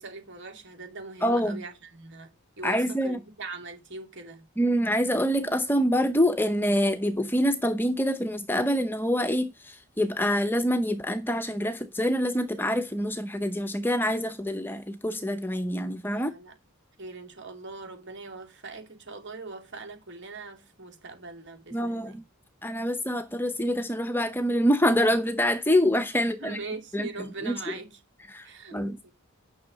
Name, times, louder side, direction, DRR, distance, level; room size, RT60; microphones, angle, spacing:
voice 1, 0.0-4.4 16.1-16.5 17.0-22.2 26.2-28.0 28.4-29.1, right 3 dB, 55° right, 2.7 m, -41 dB
voice 2, 1.2-1.6 2.6-3.2 4.6-16.3 21.7-22.2 22.6-26.6 26.9-27.7 28.3-29.1, equal, 10° left, 0.8 m, -26 dB
10.0 x 6.3 x 5.1 m
head